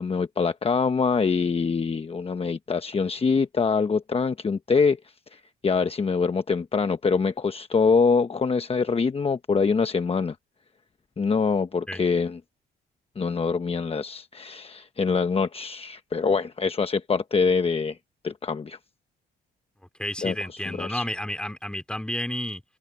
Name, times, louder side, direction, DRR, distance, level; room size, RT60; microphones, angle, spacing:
voice 1, 0.0-5.0 5.3-10.3 11.2-12.4 13.2-18.0 18.2-18.8 20.2-21.0, left 5 dB, 30° left, 1.0 m, -24 dB
voice 2, 20.0-22.6, left 1 dB, 5° left, 2.9 m, -31 dB
open air
cardioid pair, 90°, 20 cm